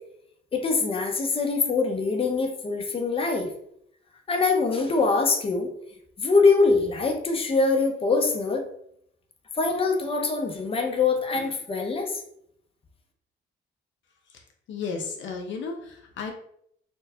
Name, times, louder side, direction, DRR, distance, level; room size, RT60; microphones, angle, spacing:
voice 1, 0.5-3.5 4.3-5.7 6.2-8.7 9.5-12.2, left 4 dB, 30° left, 3 dB, 0.6 m, -23 dB
voice 2, 14.7-16.3, left 5 dB, 70° left, 2 dB, 0.6 m, -34 dB
4.4 x 2.1 x 2.7 m, 0.70 s
cardioid pair, 90°, 20 cm